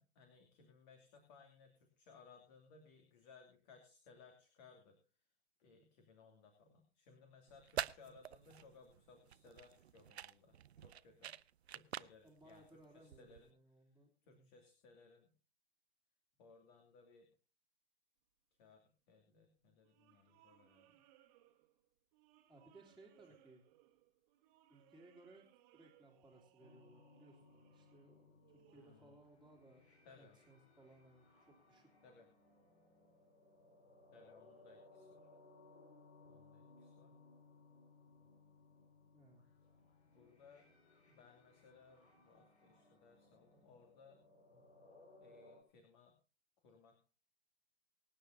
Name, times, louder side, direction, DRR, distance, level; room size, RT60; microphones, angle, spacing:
voice 1, 0.0-5.0 5.6-10.6 10.8-11.4 11.7-12.6 12.9-13.5 14.2-15.3 16.4-17.3 18.6-21.0 28.7-29.1 30.0-30.4 32.0-32.3 34.1-35.3 36.2-37.2 40.1-40.7 41.0-44.2 44.5-44.6 45.2-46.1 46.6-47.0, left 4 dB, 40° left, 4 dB, 2.7 m, -63 dB
sound 1, 7.5-13.5, right 10 dB, 70° right, 0.7 m, -48 dB
voice 2, 12.2-14.5 22.5-23.6 24.7-25.4 25.7-29.9 30.2-31.9 39.1-39.5, right 2 dB, ahead, -7 dB, 2.8 m, -63 dB
sound 2, 19.8-29.5, right 13 dB, 35° right, 1.8 m, -70 dB
sound 3, 26.6-45.6, left 3 dB, 80° left, 4.5 m, -65 dB
24.5 x 9.5 x 2.7 m, 0.34 s
hypercardioid pair, 130°, 33 cm